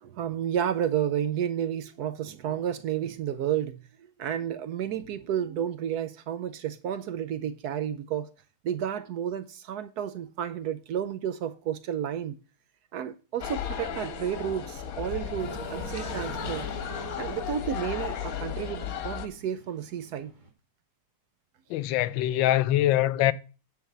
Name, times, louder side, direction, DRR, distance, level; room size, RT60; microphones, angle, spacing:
voice 1, 0.0-3.8 4.2-8.3 8.6-12.4 12.9-16.6 17.2-20.3, right 9 dB, 70° right, 1.0 m, -31 dB
sound 1, 13.4-19.3, left 8 dB, 60° left, 1.2 m, -34 dB
sound 2, 15.4-20.5, right 5 dB, 30° right, 1.3 m, -46 dB
voice 2, 21.7-23.3, left 13 dB, 90° left, 1.3 m, -23 dB
9.5 x 4.0 x 7.3 m
omnidirectional pair, 2.0 m